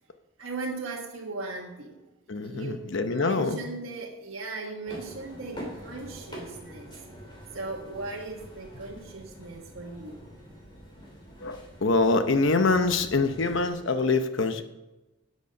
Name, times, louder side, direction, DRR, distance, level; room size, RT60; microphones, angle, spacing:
voice 1, 0.4-2.1 2.4-6.9 7.5-10.3, right 3 dB, 90° right, -2 dB, 1.5 m, -38 dB
voice 2, 2.3-3.6 11.4-14.6, left 3 dB, 70° left, 8 dB, 0.8 m, -25 dB
sound 1, 4.9-13.7, equal, 25° left, 3.3 m, -45 dB
12.5 x 8.2 x 5.3 m, 1.0 s
head